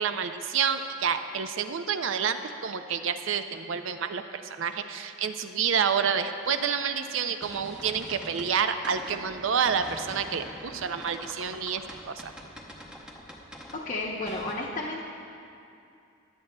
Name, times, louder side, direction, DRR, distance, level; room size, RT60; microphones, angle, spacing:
voice 1, 0.0-12.0 12.2-12.3, right 7 dB, 70° right, 9 dB, 0.5 m, -29 dB
sound 1, 6.4-8.6 8.8-14.5, equal, 5° right, 0.7 m, -45 dB
voice 2, 13.7-15.1, left 2 dB, 35° left, -5 dB, 0.7 m, -32 dB
23.0 x 7.9 x 2.2 m, 2.6 s
head